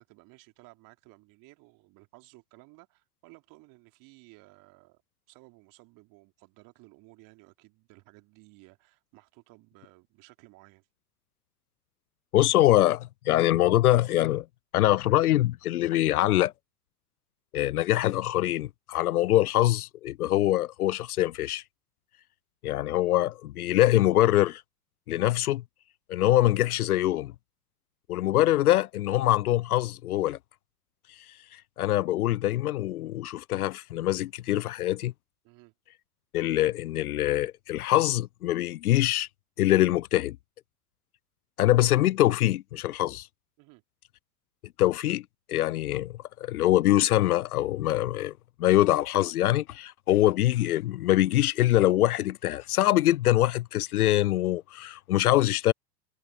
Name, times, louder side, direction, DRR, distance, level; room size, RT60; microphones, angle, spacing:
voice 1, 0.0-5.0 5.3-10.9 35.4-35.7 43.6-43.8, right 24 dB, 40° right, 3.2 m, -56 dB
voice 2, 12.3-14.5 14.7-16.5 17.5-21.6 22.6-24.6 25.1-25.6 26.1-27.3 28.1-30.4 31.5-35.1 36.3-39.3 39.6-40.4 41.6-43.3 44.8-48.3 48.6-55.7, left 14 dB, 65° left, 0.5 m, -24 dB
figure-of-eight pair, 90°, 48 cm